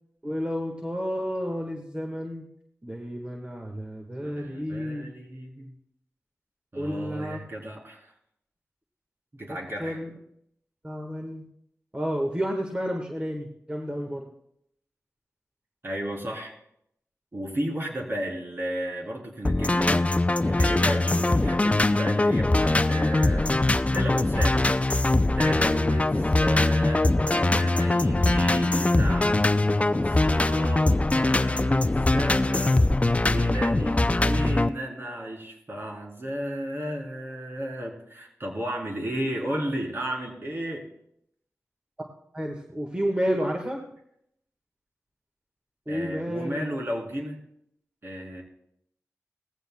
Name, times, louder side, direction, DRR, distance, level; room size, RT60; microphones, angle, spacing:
voice 1, 0.2-2.5 2.8-5.0 6.8-7.4 9.5-10.1 10.8-11.4 11.9-14.3 26.1-26.2 42.3-43.8 45.9-46.7, equal, 20° right, 1 dB, 1.7 m, -31 dB
voice 2, 4.2-5.7 6.7-8.1 9.3-10.0 15.8-16.5 17.3-20.1 20.4-24.6 25.3-29.4 29.7-32.8 33.3-40.9 45.9-47.4 48.0-48.4, right 1 dB, 50° right, -2 dB, 3.8 m, -34 dB
sound 1, 19.4-34.7, left 2 dB, 25° left, 0.5 m, -22 dB
19.0 x 15.0 x 2.3 m, 0.75 s
cardioid pair, 50°, 5 cm